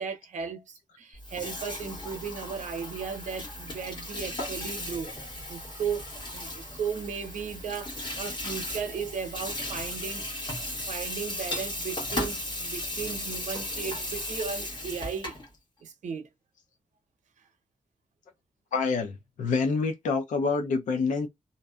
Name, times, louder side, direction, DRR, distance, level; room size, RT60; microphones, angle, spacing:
voice 1, 0.0-15.3 15.8-16.3, right 6 dB, 75° right, 0.7 m, -36 dB
Water tap faucet / Sink (filling or washing), 1.1-15.5, left 1 dB, 35° left, 1.1 m, -36 dB
voice 2, 18.7-21.3, left 4 dB, 85° left, 0.6 m, -27 dB
2.6 x 2.1 x 2.3 m
wide cardioid pair, 180°, 13 cm